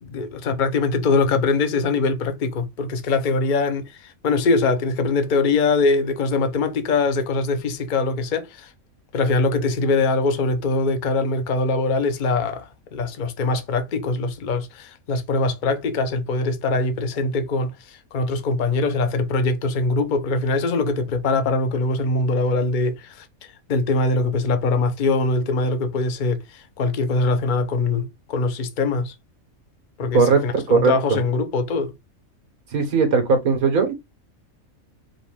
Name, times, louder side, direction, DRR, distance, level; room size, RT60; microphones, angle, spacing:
voice 1, 0.0-8.7 9.1-23.2 23.7-29.1 30.0-31.9, left 3 dB, 45° left, 0.7 m, -22 dB
voice 2, 32.7-33.9, right 5 dB, 90° right, 1.8 m, -18 dB
5.1 x 2.5 x 3.4 m
omnidirectional pair, 1.5 m